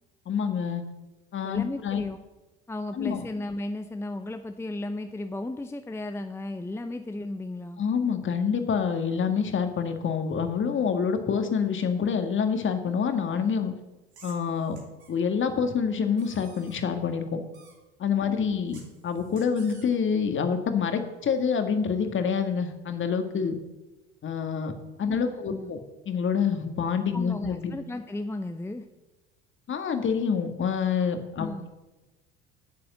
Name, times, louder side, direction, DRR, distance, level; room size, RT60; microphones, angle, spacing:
voice 1, 0.2-0.8 1.3-2.0 2.9-3.2 7.8-13.7 14.2-14.8 15.1-17.4 18.0-18.8 19.0-23.6 24.2-24.7 25.0-25.8 26.0-27.7 29.7-31.7, left 6 dB, 35° left, 7 dB, 1.7 m, -27 dB
voice 2, 1.4-2.2 2.7-7.8 18.3-18.5 25.1-25.7 27.1-28.8 31.4-31.7, left 2 dB, 10° left, 8 dB, 0.7 m, -35 dB
sound 1, 14.1-15.1 16.2-16.8 17.5-17.8 18.7-19.9, right 5 dB, 80° right, 2.3 m, -53 dB
9.8 x 6.9 x 7.7 m, 1.1 s
hypercardioid pair, 65°, 32 cm